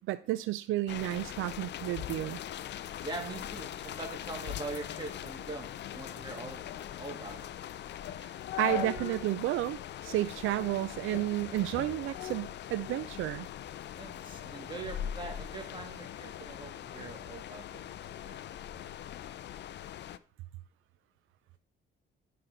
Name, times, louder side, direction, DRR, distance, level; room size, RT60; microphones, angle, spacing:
voice 1, 0.0-2.4 8.6-13.5, right 15 dB, 85° right, 0.5 m, -32 dB
sound 1, 0.9-20.2, left 11 dB, 60° left, 0.5 m, -42 dB
voice 2, 3.0-6.7 7.0-7.5 14.0-17.9 18.2-18.4, right 3 dB, 25° right, 2.6 m, -42 dB
sound 2, 4.9-9.3 9.7-9.8 10.4-10.8 11.1-13.2 13.6-16.0, left 10 dB, 85° left, 1.0 m, -42 dB
11.0 x 5.7 x 3.9 m
cardioid pair, 90°, 20 cm